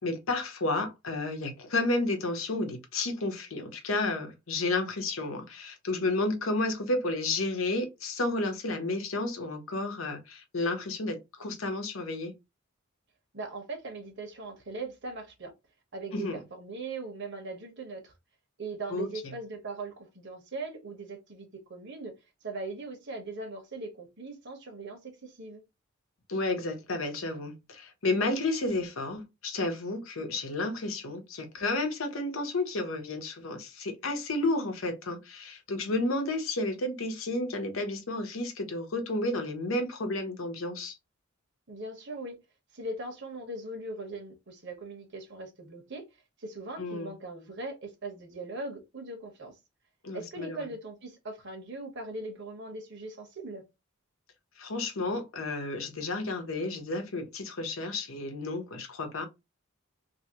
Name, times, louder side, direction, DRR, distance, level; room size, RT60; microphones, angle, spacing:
voice 1, 0.0-12.3 16.1-16.4 18.9-19.3 26.3-40.9 46.8-47.1 50.0-50.7 54.6-59.3, left 2 dB, 70° left, 0.8 m, -31 dB
voice 2, 13.3-15.5 15.9-18.1 18.6-22.1 22.4-25.6 41.7-42.4 42.7-46.0 46.4-49.6 50.1-53.6, right 2 dB, 60° right, 1.1 m, -40 dB
2.9 x 2.7 x 2.8 m
head